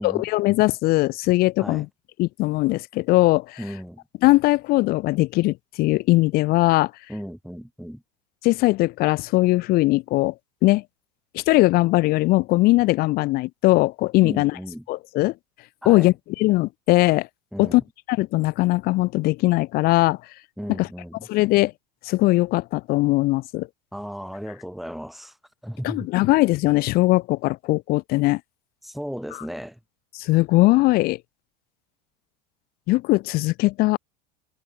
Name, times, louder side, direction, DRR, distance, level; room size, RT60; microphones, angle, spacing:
voice 1, 0.0-1.9 2.2-3.6 4.2-6.9 8.4-10.3 10.6-10.8 11.3-14.5 14.9-15.3 15.9-17.3 17.6-17.8 18.1-20.2 20.8-20.9 21.3-21.7 22.0-23.7 25.8-28.4 30.1-31.2 32.9-34.0, left 20 dB, 45° left, 0.5 m, -20 dB
voice 2, 3.6-4.0 7.1-8.0 14.2-14.8 15.8-16.1 17.5-17.8 20.6-21.2 23.9-25.3 25.6-26.1 28.8-29.8, equal, ahead, 3.0 m, -35 dB
hypercardioid pair, 105°, 21 cm